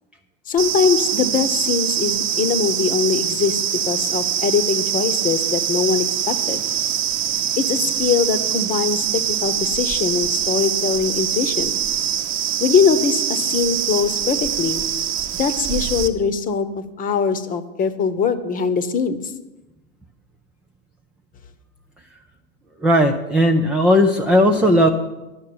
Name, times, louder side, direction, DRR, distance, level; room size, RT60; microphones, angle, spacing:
voice 1, 0.5-6.6 7.6-11.8 12.6-14.8 15.4-19.3, left 6 dB, 20° left, 13 dB, 0.9 m, -22 dB
sound 1, 0.6-16.1, right 9 dB, 30° right, 1.0 m, -23 dB
voice 2, 22.8-24.9, equal, 5° right, 2 dB, 0.3 m, -16 dB
11.0 x 6.6 x 8.6 m, 1.0 s
hypercardioid pair, 115°, 39 cm